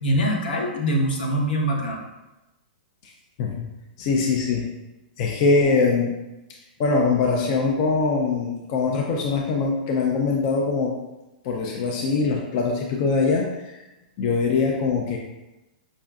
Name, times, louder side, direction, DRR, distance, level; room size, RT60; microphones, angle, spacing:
voice 1, 0.0-2.0, equal, 75° left, 0 dB, 0.9 m, -23 dB
voice 2, 4.0-4.7 5.2-6.1 6.8-11.0 11.4-13.8 14.2-15.2, left 4 dB, 35° left, 0 dB, 0.3 m, -22 dB
5.1 x 2.4 x 2.3 m, 1.0 s
hypercardioid pair, 165°, 5 cm